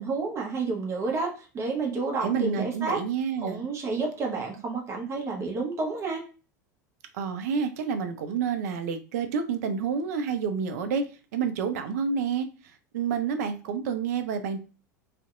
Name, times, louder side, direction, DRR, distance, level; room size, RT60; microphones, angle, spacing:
voice 1, 0.0-3.0 3.4-6.2, right 3 dB, 25° right, 0 dB, 0.7 m, -30 dB
voice 2, 2.2-3.7 7.1-11.0 11.3-12.5 12.9-14.6, right 6 dB, 55° right, 8 dB, 0.4 m, -29 dB
2.5 x 2.1 x 2.4 m, 0.34 s
figure-of-eight pair, 80°, 10 cm